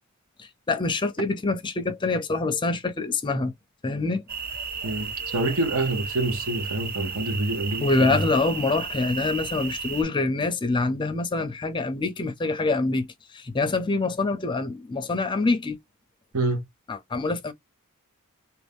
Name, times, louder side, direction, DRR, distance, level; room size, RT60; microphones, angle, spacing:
voice 1, 0.4-3.5 3.8-4.2 7.8-15.8 16.9-17.5, left 3 dB, 20° left, 0.5 m, -25 dB
sound 1, 4.3-10.0, right 5 dB, 45° right, 0.7 m, -33 dB
voice 2, 4.8-8.2 16.3-16.6, right 2 dB, 70° right, 0.9 m, -27 dB
2.9 x 2.7 x 3.4 m
head